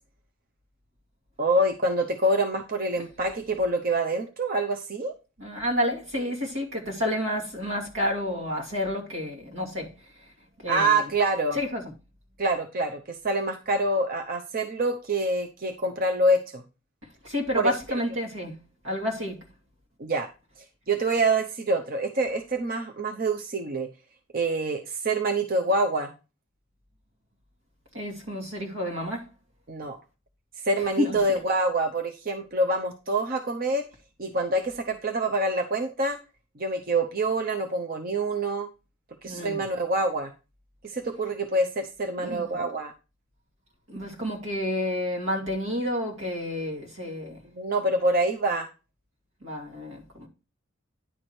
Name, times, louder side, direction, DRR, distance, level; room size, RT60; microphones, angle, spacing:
voice 1, 1.4-5.1 10.7-11.6 12.4-16.6 17.5-17.7 20.0-20.3 20.9-23.9 24.3-26.1 29.7-30.0 30.6-33.8 34.2-36.2 36.6-38.7 39.2-40.3 40.8-42.9 47.6-48.7, right 2 dB, 45° right, 0.8 m, -26 dB
voice 2, 5.4-9.9 10.6-11.0 11.5-11.8 17.2-18.5 18.8-19.4 27.9-29.2 31.0-31.2 39.3-39.6 42.2-42.7 43.9-47.4 49.4-50.3, left 1 dB, 85° right, 2.5 m, -30 dB
10.0 x 4.8 x 4.4 m
head